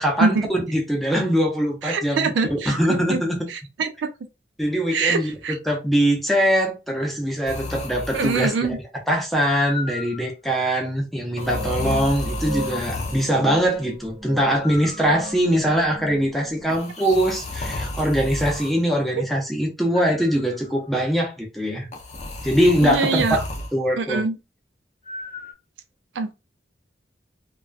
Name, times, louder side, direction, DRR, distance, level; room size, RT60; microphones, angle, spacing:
voice 1, 0.0-2.3 2.7-3.4 4.6-8.5 9.1-21.9 22.4-23.2 23.7-24.2, equal, ahead, 0.6 m, -22 dB
voice 2, 1.8-3.2 3.5-4.1 4.9-5.6 8.1-8.8 22.8-23.4 24.0-24.4 26.2-26.3, right 4 dB, 85° right, 0.4 m, -24 dB
sound 1, 7.5-8.7 9.4-10.3 11.4-13.3 14.6-15.5 16.7-18.7 19.9-20.7 21.9-23.7 25.1-25.5, left 2 dB, 40° left, 0.6 m, -33 dB
sound 2, 11.4-16.7, right 1 dB, 35° right, 0.6 m, -36 dB
2.3 x 2.2 x 2.3 m
head